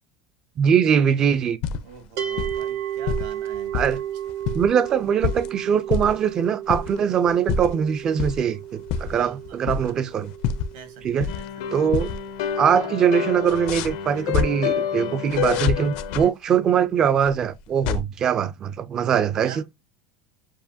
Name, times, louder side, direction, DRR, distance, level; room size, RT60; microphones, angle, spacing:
voice 1, 0.6-1.6 3.7-4.0 4.5-10.3 11.0-11.3 11.7-12.1 12.6-19.6, right 8 dB, 25° right, 0.3 m, -22 dB
sound 1, 1.4-2.0 2.3-2.7 3.1-4.0 4.3-5.5 5.9-6.3 6.7-7.0 7.3-7.8 8.2-8.4 8.8-10.1 10.4-11.6 11.9-12.2 12.5-12.6 13.4-14.5 15.3-16.2 17.2-18.0, left 7 dB, 50° left, 0.4 m, -27 dB
voice 2, 1.8-3.8 9.1-10.0 10.7-11.9 19.3-19.6, right 7 dB, 75° right, 1.6 m, -45 dB
sound 2, 2.2-13.3, right 11 dB, 50° right, 0.7 m, -34 dB
sound 3, 11.3-16.3, left 10 dB, 90° left, 0.9 m, -29 dB
7.2 x 2.4 x 2.6 m
cardioid pair, 165°, 2 cm